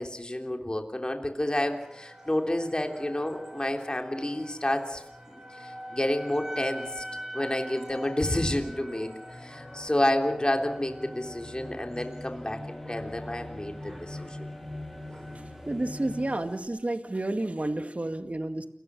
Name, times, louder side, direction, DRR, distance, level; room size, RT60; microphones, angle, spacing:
voice 1, 0.0-7.0 7.3-9.1 9.4-14.5, left 1 dB, 30° left, 4 dB, 3.4 m, -30 dB
sound 1, 1.4-16.6, equal, 20° right, 7.6 m, -45 dB
sound 2, 4.5-16.4, left 1 dB, 10° left, 4.1 m, -44 dB
voice 2, 15.7-18.7, right 1 dB, 55° right, 7 dB, 2.2 m, -30 dB
29.5 x 22.0 x 6.3 m, 0.79 s
wide cardioid pair, 40°, 3 cm